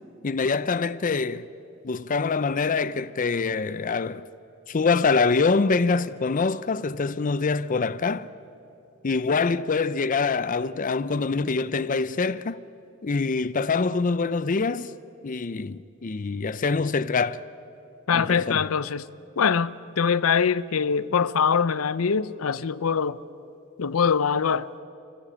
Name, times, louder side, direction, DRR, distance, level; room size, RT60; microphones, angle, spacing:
voice 1, 0.2-1.5 1.8-4.3 4.7-8.3 9.0-12.6 13.0-14.9 15.2-17.4 18.1-18.6, left 4 dB, 40° left, 0.5 m, -25 dB
voice 2, 18.1-19.0 19.4-23.2 23.8-24.8, left 6 dB, 90° left, 0.6 m, -23 dB
29.0 x 15.5 x 8.6 m
head